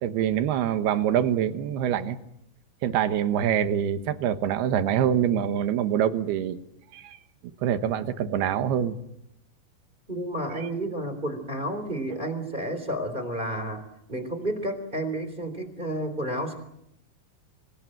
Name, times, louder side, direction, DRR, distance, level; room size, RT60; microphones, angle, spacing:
voice 1, 0.0-2.2 2.8-6.6 6.9-7.2 7.6-9.0 12.1-12.2, right 9 dB, 75° right, 10 dB, 3.1 m, -25 dB
voice 2, 10.1-13.8 14.1-16.6, right 1 dB, 10° right, 9 dB, 3.2 m, -31 dB
26.0 x 25.5 x 7.8 m, 0.78 s
omnidirectional pair, 5.0 m